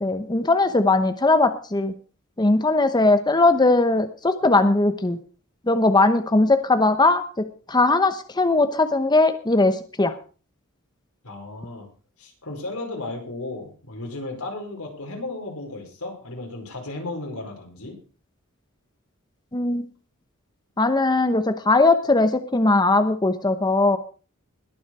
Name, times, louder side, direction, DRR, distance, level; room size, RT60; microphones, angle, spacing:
voice 1, 0.0-1.9 2.4-5.2 5.7-7.2 7.7-10.1 19.5-19.9 20.8-24.0, left 2 dB, 20° left, 9 dB, 0.9 m, -19 dB
voice 2, 11.2-11.9 12.2-17.9, left 2 dB, 85° left, 1 dB, 5.0 m, -34 dB
21.0 x 7.2 x 4.7 m, 0.37 s
head